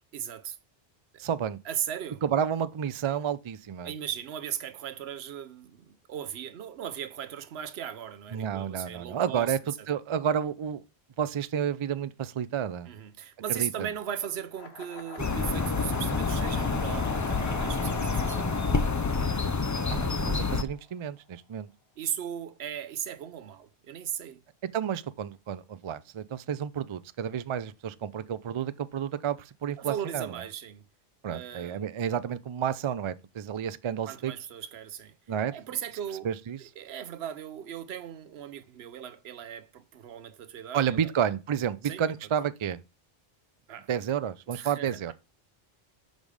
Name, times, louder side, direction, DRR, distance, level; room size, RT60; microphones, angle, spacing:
voice 1, 0.1-0.6 1.1-1.2 1.6-2.2 3.8-9.9 12.8-18.5 22.0-24.4 29.8-30.9 31.3-31.9 34.1-35.1 35.5-36.3 36.6-41.1 41.8-42.1 43.7-43.9 44.5-45.1, right 9 dB, 80° right, 0.9 m, -37 dB
voice 2, 1.2-1.6 2.2-3.9 8.3-10.8 11.2-12.9 13.5-13.9 19.9-21.7 24.7-30.4 31.2-34.3 35.3-35.5 36.2-36.6 40.7-42.8 43.9-45.1, right 8 dB, 50° right, 0.3 m, -30 dB
sound 1, 14.5-20.7, left 3 dB, 85° left, 1.5 m, -41 dB
sound 2, 15.2-20.6, left 4 dB, 30° left, 0.3 m, -28 dB
5.3 x 5.1 x 6.3 m
omnidirectional pair, 1.0 m